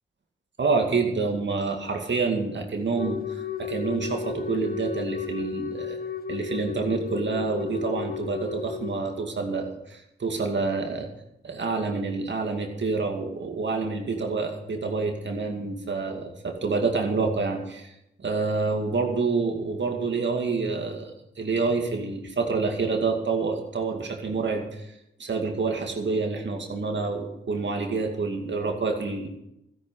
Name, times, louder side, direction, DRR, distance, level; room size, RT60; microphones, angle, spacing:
voice 1, 0.6-6.0 6.3-11.1 11.4-17.9 18.2-24.9 25.2-29.3, right 4 dB, 60° right, 3 dB, 2.3 m, -27 dB
Wind instrument woodwind instrument, 2.9-9.0, left 7 dB, 45° left, 0.8 m, -34 dB
13.0 x 11.5 x 5.5 m, 0.84 s
cardioid pair, 45°, 21 cm